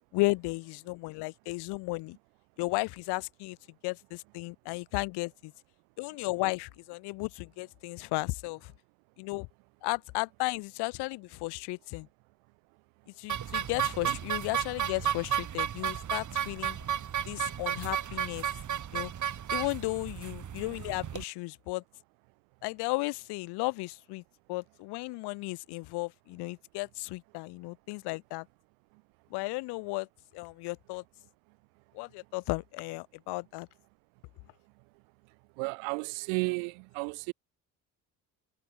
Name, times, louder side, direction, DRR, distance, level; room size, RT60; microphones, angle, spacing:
voice 1, 0.1-2.2 2.6-3.6 3.8-5.5 6.0-8.7 9.2-9.5 9.8-12.1 13.2-16.8 17.2-18.5 18.9-19.1 19.5-21.8 22.6-24.2 24.5-28.5 29.3-30.1 30.3-31.0 31.9-33.7, left 24 dB, 70° left, 0.8 m, -34 dB
sound 1, 13.3-21.2, right 9 dB, 45° right, 1.7 m, -33 dB
voice 2, 35.6-37.3, right 40 dB or more, 80° right, 1.2 m, -33 dB
hypercardioid pair, 60°, 41 cm